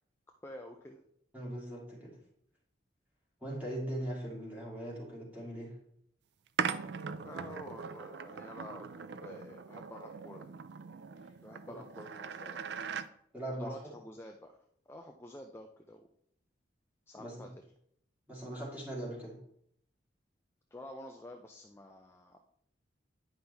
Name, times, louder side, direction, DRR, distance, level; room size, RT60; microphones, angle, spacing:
voice 1, 0.4-1.0 7.2-10.6 11.4-12.7 13.5-14.6 14.9-16.1 17.1-17.5 20.7-22.4, left 1 dB, 15° left, 2 dB, 0.4 m, -49 dB
voice 2, 1.3-2.2 3.4-5.7 13.3-13.7 17.1-17.4 18.3-19.4, right 1 dB, 10° right, -5 dB, 2.6 m, -40 dB
sound 1, 6.6-13.1, right 6 dB, 60° right, 0.4 m, -40 dB
9.6 x 5.6 x 3.4 m, 0.69 s
head